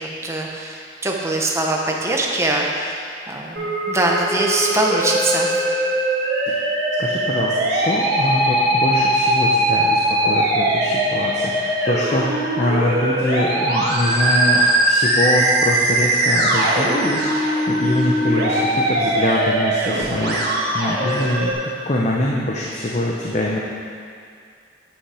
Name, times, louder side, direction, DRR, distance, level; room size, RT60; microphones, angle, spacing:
voice 1, 0.0-5.6, right 2 dB, 15° right, -1 dB, 0.9 m, -22 dB
Musical instrument, 3.6-21.5, right 1 dB, 55° right, 2.1 m, -20 dB
voice 2, 7.0-12.3 12.6-20.4 20.7-23.6, left 1 dB, 35° left, -3 dB, 0.7 m, -24 dB
8.7 x 8.6 x 4.9 m, 2.3 s
head